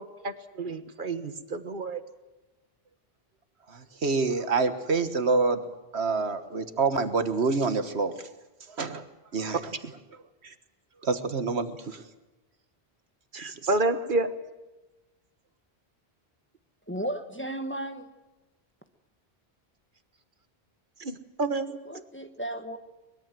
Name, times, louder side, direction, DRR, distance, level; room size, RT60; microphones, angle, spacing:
voice 1, 0.0-2.0 13.3-14.3 21.0-21.8, right 2 dB, 50° right, 10 dB, 1.5 m, -29 dB
voice 2, 3.7-5.6 5.9-8.3 8.6-9.1 9.3-10.5 11.0-12.0 13.3-13.7, right 4 dB, 80° right, 10 dB, 1.7 m, -28 dB
voice 3, 16.9-18.1 21.8-22.8, right 1 dB, 10° left, 7 dB, 1.3 m, -34 dB
23.0 x 21.5 x 7.6 m, 1.1 s
omnidirectional pair, 1.1 m